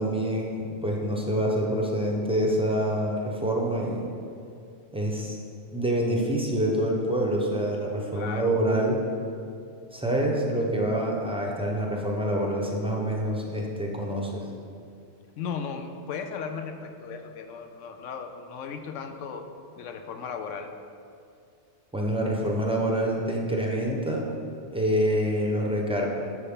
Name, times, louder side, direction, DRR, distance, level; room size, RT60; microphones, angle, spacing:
voice 1, 0.0-4.0 4.9-5.4 5.7-9.0 9.9-14.4 21.9-24.2 24.7-26.1, right 1 dB, 5° right, -1 dB, 0.7 m, -26 dB
voice 2, 8.1-8.6 15.4-19.5 19.8-20.7, left 6 dB, 80° left, 7 dB, 0.9 m, -36 dB
8.2 x 6.7 x 3.7 m, 2.4 s
omnidirectional pair, 1.3 m